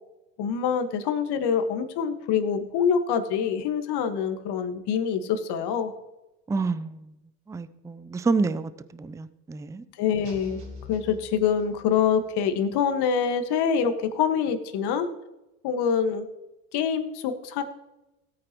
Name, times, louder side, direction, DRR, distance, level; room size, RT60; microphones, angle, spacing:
voice 1, 0.4-5.9 10.0-10.6 10.9-15.1 15.6-16.3 16.7-17.6, left 7 dB, 55° left, 8 dB, 1.7 m, -25 dB
voice 2, 6.5-7.1 7.5-9.8, right 4 dB, 5° right, 14 dB, 0.4 m, -28 dB
sound 1, 10.2-12.1, left 2 dB, 55° right, 3.9 m, -44 dB
17.0 x 8.8 x 3.1 m, 0.96 s
hypercardioid pair, 75°, 49 cm